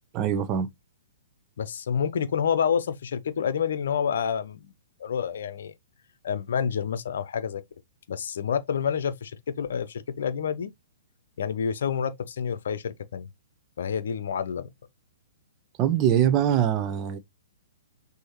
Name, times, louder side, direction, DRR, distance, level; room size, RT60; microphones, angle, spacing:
voice 1, 0.1-0.7 15.8-17.2, right 10 dB, 30° right, 0.6 m, -23 dB
voice 2, 1.6-4.7 5.0-5.7 6.2-7.6 8.1-10.7 11.4-13.3 13.8-14.7, left 7 dB, 65° left, 0.6 m, -28 dB
6.3 x 2.8 x 3.0 m
hypercardioid pair, 125°, 0 cm